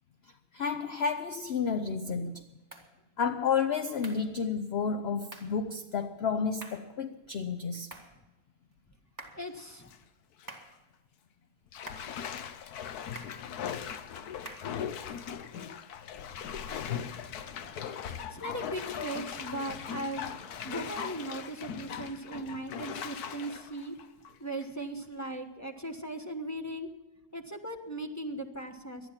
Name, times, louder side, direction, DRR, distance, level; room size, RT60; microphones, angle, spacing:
voice 1, 0.5-2.4 3.2-7.9, left 6 dB, 55° left, 0.7 m, -31 dB
sound 1, 2.7-2.9 4.0-4.3 5.3-5.6 6.6-6.9 7.9-8.2 9.2-9.5 10.5-10.8 11.9-12.2 13.1-13.4 14.4-14.8, right 2 dB, 10° right, 1.7 m, -47 dB
voice 2, 9.3-9.9 16.4-16.9 18.0-20.3 20.6-26.9 27.3-29.1, right 1 dB, 10° left, 1.1 m, -38 dB
Bathtub (filling or washing), 9.5-10.0 10.4-10.5 11.7-24.8 25.3-25.4, left 8 dB, 75° left, 1.4 m, -39 dB
sound 2, 16.1-22.4, left 1 dB, 30° left, 2.6 m, -58 dB
19.0 x 12.0 x 5.7 m
omnidirectional pair, 1.7 m